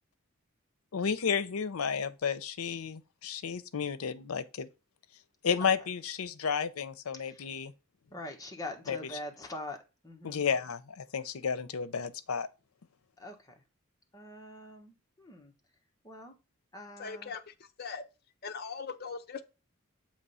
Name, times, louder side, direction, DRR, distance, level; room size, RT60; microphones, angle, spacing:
voice 1, 0.9-4.7 5.4-7.7 8.9-9.0 10.2-12.5, left 6 dB, 85° left, 0.6 m, -32 dB
voice 2, 8.1-9.8 10.0-10.4 13.2-13.6 14.1-15.5 16.0-16.4 16.7-17.3, left 1 dB, 15° left, 1.1 m, -44 dB
voice 3, 17.0-18.0 18.4-19.4, left 5 dB, 45° left, 0.6 m, -40 dB
7.3 x 3.1 x 5.5 m
head